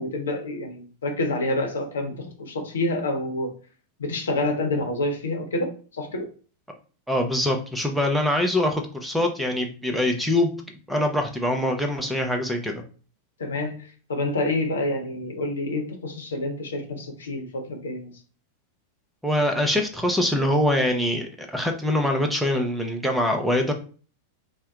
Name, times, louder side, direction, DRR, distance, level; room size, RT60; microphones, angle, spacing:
voice 1, 0.0-3.5 4.0-6.3 13.4-18.1, left 2 dB, 65° left, 3 dB, 0.7 m, -28 dB
voice 2, 7.1-10.5 10.9-12.8 19.2-23.7, left 1 dB, ahead, 3 dB, 0.6 m, -24 dB
2.7 x 2.2 x 3.5 m, 0.39 s
figure-of-eight pair, 90°, 0 cm